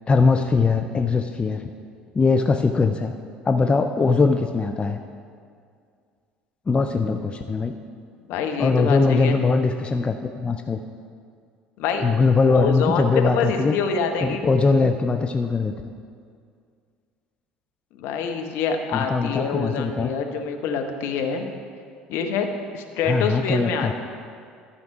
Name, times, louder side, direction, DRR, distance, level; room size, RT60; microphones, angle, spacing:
voice 1, 0.1-1.7 2.1-3.1 3.4-5.0 6.7-7.7 8.6-10.8 12.0-13.8 14.2-15.9 18.9-20.1 23.1-23.9, left 4 dB, 25° left, 7 dB, 0.4 m, -21 dB
voice 2, 8.3-9.4 11.8-12.1 12.5-14.4 18.0-21.5 22.1-22.5 22.7-23.9, left 5 dB, 55° left, 4 dB, 0.9 m, -26 dB
12.5 x 5.8 x 4.9 m, 2.2 s
figure-of-eight pair, 60°, 5 cm